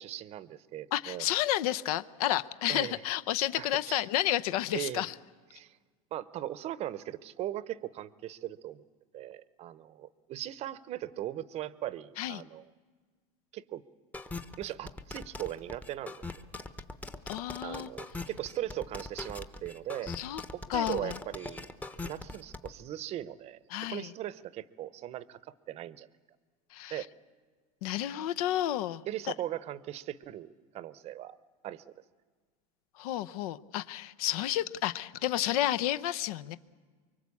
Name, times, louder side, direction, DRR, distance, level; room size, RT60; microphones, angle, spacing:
voice 1, 0.0-1.3 2.7-3.0 3.6-4.1 4.7-5.1 5.5-5.8 6.1-8.8 9.1-12.7 13.5-13.8 14.6-16.2 17.6-20.1 20.5-21.7 22.0-23.6 23.9-26.1 26.9-27.1 29.1-30.5 30.7-31.4 31.6-31.9, right 13 dB, 35° right, 18 dB, 0.7 m, -39 dB
voice 2, 0.9-5.1 12.2-12.4 17.3-17.9 20.1-20.4 20.7-21.2 23.7-24.1 26.7-27.0 27.8-29.0 33.0-36.6, left 13 dB, 80° left, 14 dB, 0.8 m, -31 dB
sound 1, 14.1-22.7, left 3 dB, 10° left, 0.8 m, -41 dB
24.5 x 23.5 x 8.4 m, 1.5 s
supercardioid pair, 155°, 19 cm